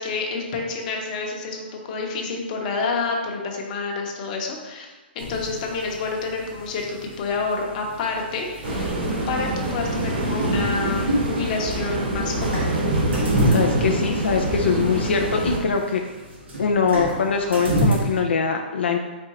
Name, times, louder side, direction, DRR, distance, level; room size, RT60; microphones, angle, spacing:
voice 1, 0.0-4.9 5.1-8.9 9.3-12.7, left 4 dB, 45° left, 1 dB, 0.9 m, -28 dB
sound 1, 5.2-18.2, right 1 dB, 90° right, 1.2 m, -30 dB
sound 2, 8.6-15.6, right 1 dB, 60° right, 1.3 m, -25 dB
voice 2, 13.5-16.0 16.6-19.0, left 5 dB, 85° left, 2 dB, 0.4 m, -22 dB
4.3 x 3.6 x 3.0 m, 1.2 s
hypercardioid pair, 140°, 6 cm